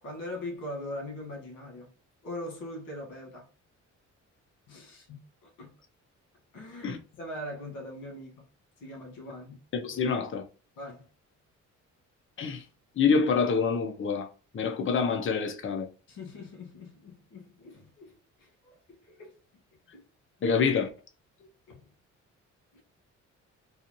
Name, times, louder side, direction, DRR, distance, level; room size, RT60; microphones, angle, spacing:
voice 1, 0.0-1.9 2.2-3.5 4.7-5.7 6.5-8.5 8.8-9.6 10.8-11.1 16.1-19.3 19.9-20.0 21.4-21.9 22.7-22.8, left 1 dB, 85° left, 1.7 m, -42 dB
voice 2, 9.7-10.4 12.4-12.6 13.0-14.3 14.5-15.9 20.4-20.9, left 5 dB, 40° left, 0.8 m, -26 dB
4.1 x 2.5 x 3.0 m
cardioid pair, 90°, 30 cm